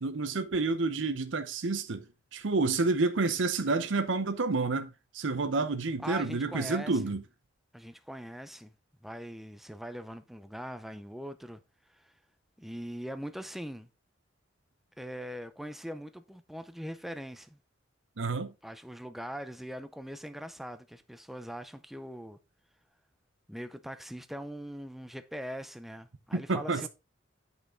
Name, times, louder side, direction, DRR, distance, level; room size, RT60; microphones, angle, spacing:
voice 1, 0.0-2.0 2.3-7.2 18.2-18.5 26.3-26.9, right 3 dB, 80° right, 0.8 m, -29 dB
voice 2, 6.0-7.0 7.7-8.7 9.0-11.6 11.9-12.1 12.6-13.9 15.0-17.6 18.6-22.4 23.5-26.9, equal, ahead, 0.6 m, -41 dB
8.6 x 5.3 x 3.7 m
head